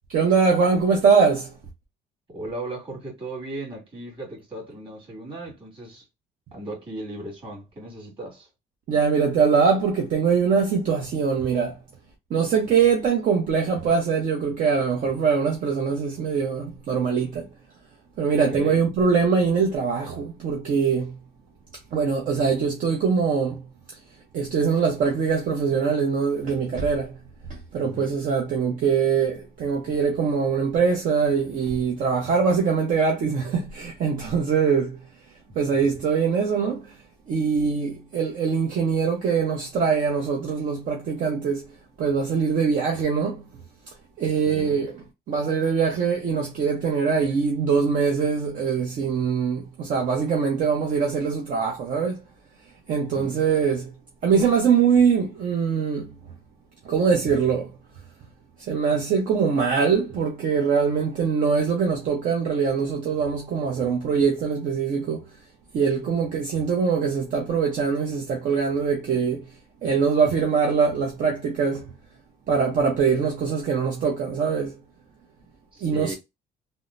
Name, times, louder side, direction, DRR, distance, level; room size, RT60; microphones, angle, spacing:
voice 1, 0.1-1.5 8.9-11.8 12.3-17.5 18.2-21.2 21.9-23.6 24.3-27.1 27.7-35.0 35.6-36.9 37.3-41.7 42.0-43.4 44.2-44.9 45.3-52.2 52.9-53.9 54.2-56.1 56.9-57.7 58.7-65.2 65.7-69.4 69.8-71.9 72.5-74.8 75.8-76.1, right 6 dB, 55° right, 0.8 m, -23 dB
voice 2, 2.3-6.0 6.5-8.5 18.5-18.9 27.8-28.1 35.5-35.9 44.4-44.9 53.1-53.4 75.7-76.1, right 2 dB, 30° right, 2.1 m, -37 dB
3.6 x 2.1 x 2.6 m
cardioid pair, 110°, 17 cm